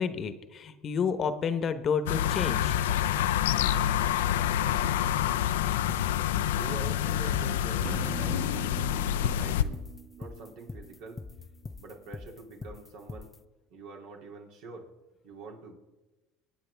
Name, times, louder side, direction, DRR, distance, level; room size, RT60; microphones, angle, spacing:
voice 1, 0.0-2.7, left 6 dB, 45° left, 11 dB, 1.0 m, -30 dB
sound 1, 2.1-9.6, left 10 dB, 85° left, 0.5 m, -27 dB
sound 2, 5.9-13.4, left 3 dB, 20° left, 0.6 m, -42 dB
voice 2, 6.5-8.7 9.2-9.8 10.2-11.2 11.8-13.3 13.7-14.9 15.2-15.7, right 4 dB, 70° right, 1 dB, 2.6 m, -45 dB
sound 3, 7.8-11.6, right 7 dB, 35° right, 0.6 m, -44 dB
24.0 x 9.0 x 3.5 m, 1.1 s
hypercardioid pair, 80°, 0 cm